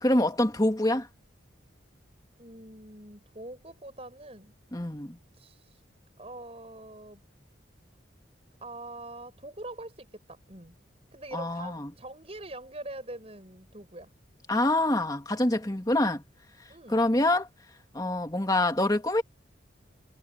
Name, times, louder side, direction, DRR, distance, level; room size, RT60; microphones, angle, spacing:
voice 1, 0.0-1.1 4.7-5.2 11.3-11.9 14.5-16.2 16.9-17.5 17.9-19.2, left 1 dB, 20° left, 1.6 m, -25 dB
voice 2, 2.4-4.5 5.3-5.9 6.2-7.2 8.6-10.8 11.1-14.1 16.7-17.1, right 2 dB, 30° right, 6.1 m, -44 dB
head